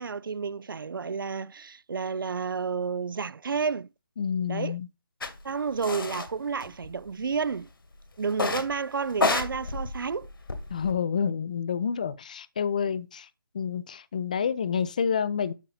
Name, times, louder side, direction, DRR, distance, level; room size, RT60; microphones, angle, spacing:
voice 1, 0.0-3.9 4.5-4.8 5.4-7.7 8.2-10.3, right 5 dB, 70° right, 0.4 m, -31 dB
voice 2, 4.2-4.9 10.7-13.3 13.5-15.5, left 7 dB, 20° left, 0.4 m, -28 dB
sound 1, 5.2-5.3 5.8-6.3 6.6-7.3 8.3-8.7 9.1-10.9, left 3 dB, 75° left, 2.1 m, -29 dB
11.5 x 4.0 x 4.1 m
figure-of-eight pair, 165°, 12 cm